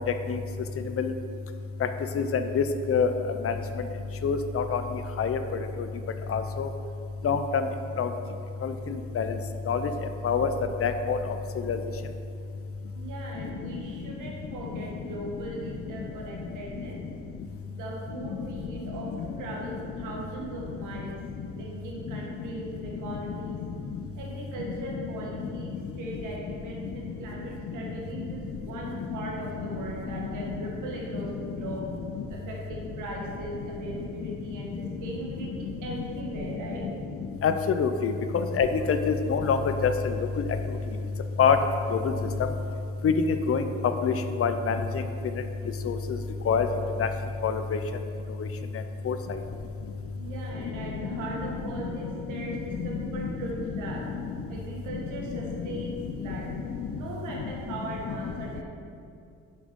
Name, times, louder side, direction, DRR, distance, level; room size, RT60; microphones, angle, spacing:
voice 1, 2.5-3.1 3.4-3.5 4.2-4.8 5.2-5.4 6.3-6.7 7.2-7.4 8.0-8.1 8.6-8.7 9.2-9.3 9.7-9.8 10.2-10.5 10.8-11.2 11.7-11.8 37.4-39.9 41.4-41.6 41.9-42.0 43.0-43.6 44.0-44.1 44.4-44.8 45.9-46.0 46.5-46.7 47.0-47.1 47.4-47.6 49.1-49.2 52.8-52.9, left 6 dB, 50° left, 8 dB, 0.6 m, -24 dB
voice 2, 12.9-17.0 17.7-21.2 21.5-23.6 24.1-31.9 32.3-36.9 50.1-54.1 54.5-56.5 56.9-58.6, right 2 dB, 85° right, -2 dB, 1.7 m, -39 dB
6.3 x 5.8 x 5.3 m, 2.4 s
cardioid pair, 90°, 30 cm